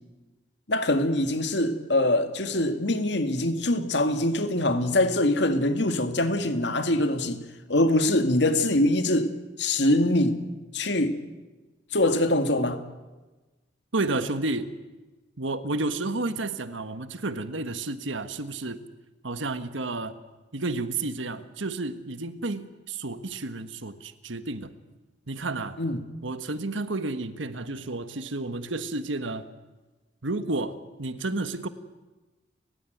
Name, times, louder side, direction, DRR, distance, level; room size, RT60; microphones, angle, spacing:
voice 1, 0.7-7.4 7.7-9.3 9.6-10.4 10.7-11.2 11.9-12.8 25.8-26.0, left 1 dB, 65° left, 8 dB, 2.2 m, -23 dB
voice 2, 13.9-14.7 15.4-18.8 19.2-20.1 20.5-24.7 25.3-25.8 26.2-29.4 30.2-31.7, right 2 dB, 85° right, 11 dB, 1.5 m, -31 dB
30.0 x 16.0 x 9.3 m, 1.2 s
head